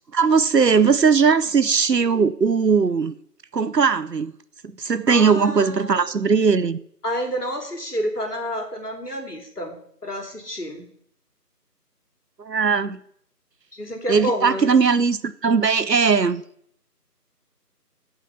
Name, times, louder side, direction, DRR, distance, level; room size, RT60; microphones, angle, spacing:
voice 1, 0.1-3.1 3.5-4.3 4.8-6.8 12.4-13.0 14.1-16.4, right 5 dB, 80° right, 0.8 m, -19 dB
voice 2, 5.1-6.1 7.0-10.9 13.7-14.7, equal, 70° left, 3.0 m, -29 dB
15.5 x 5.8 x 5.8 m
figure-of-eight pair, 175°, 49 cm